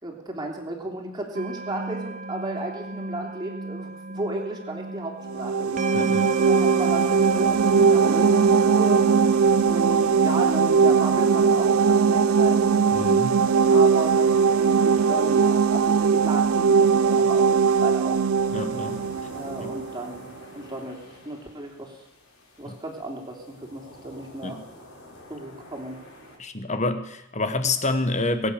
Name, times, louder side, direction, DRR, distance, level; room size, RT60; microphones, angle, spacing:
voice 1, 0.0-5.8 6.1-9.0 9.7-12.7 13.7-18.2 19.3-20.3 20.5-22.0 22.6-24.6 25.3-26.0, right 2 dB, 20° right, 0 dB, 3.2 m, -34 dB
sound 1, 1.3-14.4, right 3 dB, 35° right, 1.2 m, -32 dB
sound 2, 5.3-19.9, right 6 dB, 80° right, 0.5 m, -20 dB
voice 2, 5.9-6.3 12.9-13.4 18.5-19.0 19.6-19.7 22.7-22.8 24.4-24.6 26.4-28.5, left 2 dB, 35° left, 10 dB, 1.3 m, -28 dB
sound 3, 6.8-26.4, left 1 dB, 80° left, 4.7 m, -47 dB
22.5 x 8.8 x 6.7 m, 0.96 s
head